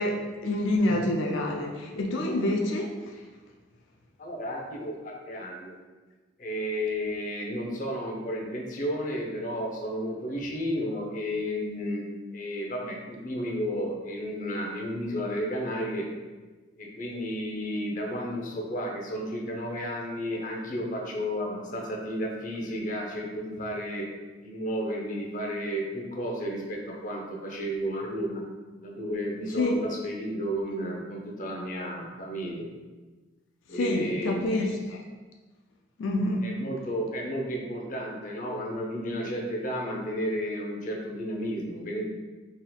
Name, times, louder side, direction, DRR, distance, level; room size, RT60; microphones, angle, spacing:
voice 1, 0.0-3.2 29.6-29.8 33.7-35.0 36.0-36.5, left 1 dB, 90° left, 1 dB, 0.4 m, -27 dB
voice 2, 4.2-5.8 6.4-12.0 12.3-16.1 16.8-24.1 24.4-28.4 28.8-32.7 33.7-34.8 36.4-42.1, equal, 45° left, 0 dB, 0.7 m, -32 dB
4.3 x 3.6 x 2.3 m, 1.3 s
head